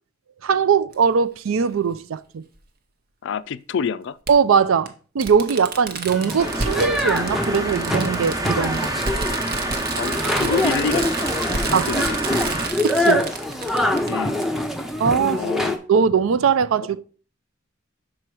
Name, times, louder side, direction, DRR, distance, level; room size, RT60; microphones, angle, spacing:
voice 1, 0.4-2.4 4.3-8.9 11.7-11.9 12.8-13.3 15.0-15.4 15.9-17.0, right 6 dB, 75° right, 0.4 m, -20 dB
Fireworks, 0.9-1.0 2.6-2.7 4.3-4.4 4.9-5.0 5.2-14.1 14.4-14.5, right 4 dB, 45° right, 0.8 m, -30 dB
voice 2, 3.2-4.2 10.0-11.1 11.6-12.0 14.1-14.5 15.3-15.8, left 6 dB, 60° left, 0.4 m, -27 dB
sound 1, 6.1-15.8, left 1 dB, ahead, 0.6 m, -25 dB
sound 2, 6.4-12.7, right 1 dB, 20° right, 1.0 m, -28 dB
6.2 x 4.5 x 4.7 m
head